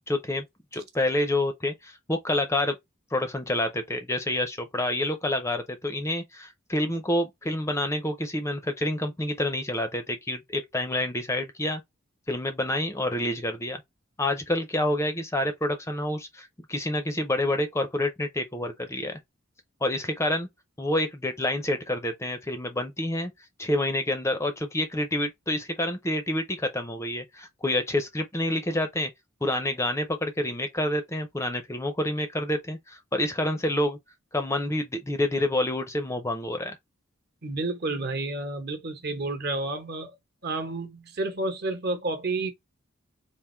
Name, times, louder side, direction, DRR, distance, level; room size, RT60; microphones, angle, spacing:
voice 1, 0.1-0.4 0.7-2.8 3.1-11.8 12.3-13.8 14.2-19.2 19.8-20.5 20.8-23.3 23.6-29.1 29.4-34.0 34.3-36.8, left 1 dB, 15° left, 0.5 m, -28 dB
voice 2, 37.4-40.1 40.4-42.5, right 2 dB, 50° right, 1.1 m, -30 dB
3.7 x 2.5 x 4.3 m
head